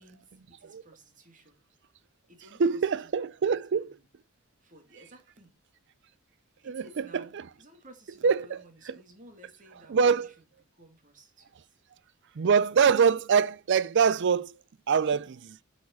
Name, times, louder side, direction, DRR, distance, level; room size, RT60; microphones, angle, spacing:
voice 1, 0.0-1.6 2.3-4.0 4.6-5.6 6.6-10.3 10.7-11.7, right 1 dB, 35° right, 2.3 m, -55 dB
voice 2, 2.6-3.9 6.6-7.4 8.2-8.6 8.9-9.0 9.9-10.3 12.4-14.6 14.9-15.6, right 6 dB, 55° right, 0.4 m, -24 dB
8.3 x 4.9 x 5.9 m
head